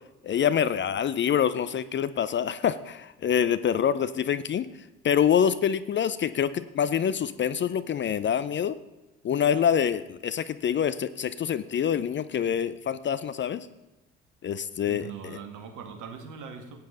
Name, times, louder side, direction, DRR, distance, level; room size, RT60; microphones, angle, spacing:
voice 1, 0.2-4.7 5.0-8.8 9.2-13.7 14.4-15.4, left 8 dB, 30° left, 14 dB, 0.6 m, -26 dB
voice 2, 14.9-16.8, right 6 dB, 55° right, 6 dB, 2.0 m, -41 dB
16.0 x 9.1 x 3.9 m, 1.1 s
figure-of-eight pair, 55°, 36 cm